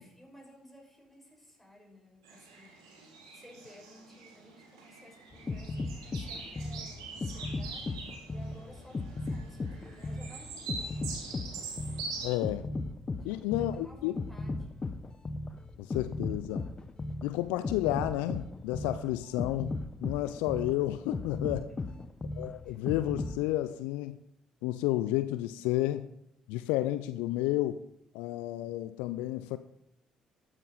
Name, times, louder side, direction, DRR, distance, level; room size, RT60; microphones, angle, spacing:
voice 1, 0.0-2.8 3.3-11.3 11.6-11.7 13.1-14.9 21.7-22.1 22.6-22.8, equal, 5° left, 0 dB, 5.8 m, -56 dB
sound 1, 2.2-12.3, right 4 dB, 85° right, 1.9 m, -44 dB
sound 2, 5.3-23.4, left 2 dB, 30° left, 1.0 m, -36 dB
voice 2, 12.2-12.7 13.2-14.2 15.8-16.6 17.2-21.7 22.4-24.2 24.6-26.1 26.5-27.8 28.1-29.6, left 15 dB, 75° left, 12 dB, 0.5 m, -31 dB
12.5 x 9.8 x 4.1 m, 0.76 s
hypercardioid pair, 45°, 3 cm